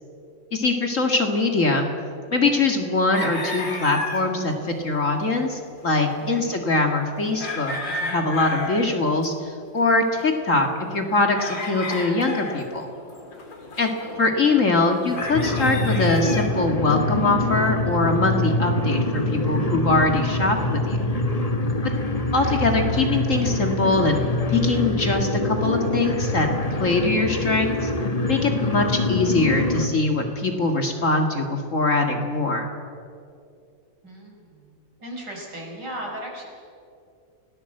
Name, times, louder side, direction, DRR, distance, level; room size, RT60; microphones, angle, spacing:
voice 1, 0.5-1.9 2.3-9.3 9.7-12.9 13.8-13.9 14.2-21.0 22.3-24.2 24.5-26.5 26.8-27.9 28.3-32.7, left 3 dB, 40° left, 3 dB, 2.2 m, -22 dB
sound 1, 3.1-4.3 4.7-4.8 5.0-5.1 5.3-5.5 5.8-9.5 9.7-16.6, left 2 dB, 70° left, 4.1 m, -33 dB
voice 2, 6.2-6.6 14.0-14.2 22.4-22.7 28.6-28.8 34.0-36.5, right 1 dB, 60° right, -1 dB, 5.9 m, -38 dB
sound 2, 15.1-29.9, left 2 dB, 20° left, 1.3 m, -24 dB
28.0 x 18.0 x 7.8 m, 2.5 s
omnidirectional pair, 2.0 m